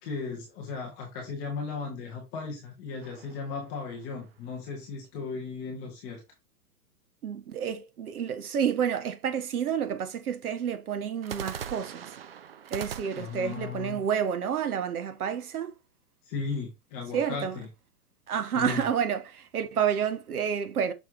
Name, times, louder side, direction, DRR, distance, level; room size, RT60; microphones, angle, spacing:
voice 1, 0.0-6.2 13.2-14.0 16.2-17.7 18.5-18.8, left 5 dB, 10° left, 0.6 m, -36 dB
sound 1, 3.0-4.5 11.2-15.2, right 8 dB, 40° right, 0.5 m, -42 dB
voice 2, 7.2-12.1 12.7-15.8 17.1-17.6 18.3-20.9, right 8 dB, 65° right, 1.3 m, -29 dB
6.0 x 4.5 x 3.5 m
hypercardioid pair, 160°, 47 cm